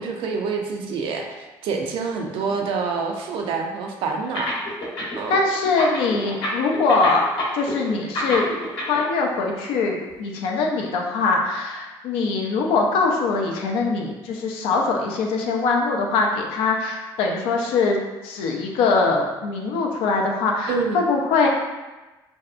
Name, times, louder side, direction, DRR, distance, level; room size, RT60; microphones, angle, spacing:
voice 1, 0.0-4.5 5.2-5.4 20.7-21.0, right 4 dB, 70° right, 2 dB, 0.4 m, -27 dB
sound 1, 4.3-5.3 5.6-9.0, left 1 dB, 65° left, 0.8 m, -28 dB
voice 2, 5.3-7.2 7.5-8.4 8.9-18.0 18.2-21.5, left 4 dB, 85° left, 1 dB, 0.4 m, -22 dB
2.6 x 2.1 x 2.4 m, 1.1 s
supercardioid pair, 85°, 9 cm